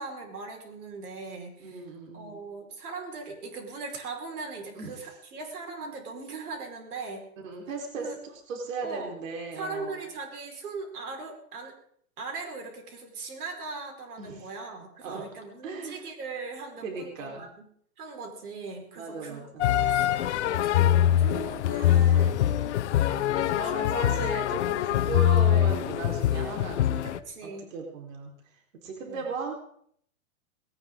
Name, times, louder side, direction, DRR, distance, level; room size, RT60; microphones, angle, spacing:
voice 1, 0.0-1.9 2.1-7.3 8.0-8.2 8.8-9.2 9.5-11.8 12.2-17.7 18.0-19.5 19.9-20.1 20.4-22.8 23.1-24.1 27.0-27.7 29.1-29.2, right 3 dB, 90° right, 2 dB, 5.1 m, -39 dB
voice 2, 1.6-2.4 4.7-4.9 5.8-5.9 7.4-10.0 14.2-14.4 15.0-15.3 15.6-16.0 16.8-17.5 19.0-19.7 23.3-27.1 27.4-28.3 28.8-29.5, right 4 dB, 60° right, 1 dB, 4.3 m, -37 dB
sound 1, 19.6-27.2, left 11 dB, 50° left, 0.9 m, -24 dB
19.0 x 18.0 x 3.8 m, 0.64 s
hypercardioid pair, 165°, 43 cm